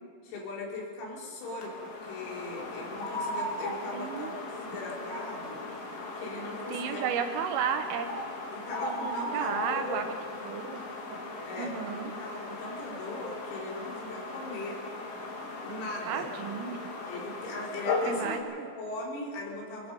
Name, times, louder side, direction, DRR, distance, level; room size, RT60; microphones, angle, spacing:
voice 1, 0.2-5.6 6.2-7.0 8.5-10.0 11.5-14.8 15.6-16.2 17.1-19.9, left 2 dB, 90° left, -3 dB, 6.3 m, -39 dB
sound 1, 1.4-18.4, left 2 dB, 55° left, 4.1 m, -37 dB
voice 2, 3.9-4.3 6.7-8.1 8.8-10.1 10.5-10.8 11.1-11.2 11.6-12.1 16.1-16.8 18.1-18.7, right 7 dB, 80° right, 7 dB, 3.7 m, -33 dB
22.5 x 22.5 x 5.4 m, 2.3 s
omnidirectional pair, 6.0 m